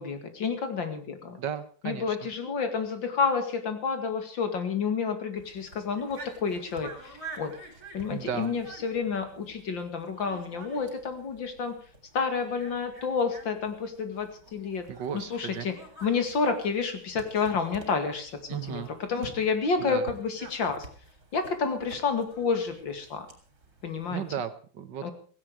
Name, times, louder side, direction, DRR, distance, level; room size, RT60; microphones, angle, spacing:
voice 1, 0.0-1.4 1.8-7.5 7.9-11.7 12.1-14.9 15.1-15.7 16.0-18.8 19.1-20.9 21.3-23.3 23.8-24.2 25.0-25.1, left 5 dB, 75° left, 8 dB, 2.9 m, -29 dB
voice 2, 1.4-2.3 8.1-8.5 14.9-15.7 18.5-18.9 19.8-20.1 24.1-25.1, right 8 dB, 65° right, 12 dB, 1.8 m, -35 dB
sound 1, 5.4-24.4, right 3 dB, 50° right, 3.8 m, -49 dB
17.0 x 16.0 x 4.8 m, 0.42 s
omnidirectional pair, 2.1 m